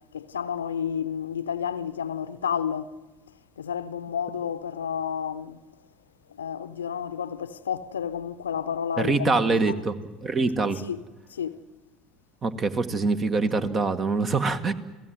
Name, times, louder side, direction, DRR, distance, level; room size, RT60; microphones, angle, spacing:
voice 1, 0.1-3.0 3.6-5.6 6.4-9.6 10.8-11.0 11.3-11.6, left 8 dB, 80° left, 0.7 m, -31 dB
voice 2, 9.0-10.8 12.4-14.7, right 3 dB, 35° right, 1.8 m, -24 dB
29.5 x 17.0 x 7.8 m
figure-of-eight pair, 65°, 0 cm